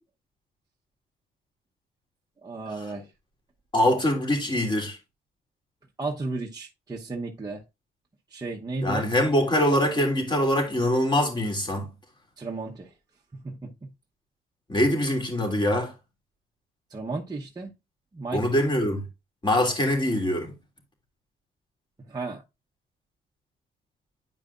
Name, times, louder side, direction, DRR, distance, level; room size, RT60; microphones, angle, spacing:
voice 1, 2.4-3.1 6.0-7.6 8.3-9.0 12.4-12.9 13.3-13.9 16.9-17.7 18.1-18.5 22.1-22.4, right 3 dB, 20° right, 0.9 m, -34 dB
voice 2, 3.7-5.0 8.8-11.9 14.7-15.9 18.3-19.0 19.4-20.5, left 1 dB, 25° left, 2.8 m, -23 dB
9.9 x 4.8 x 2.4 m
cardioid pair, 90°, 20 cm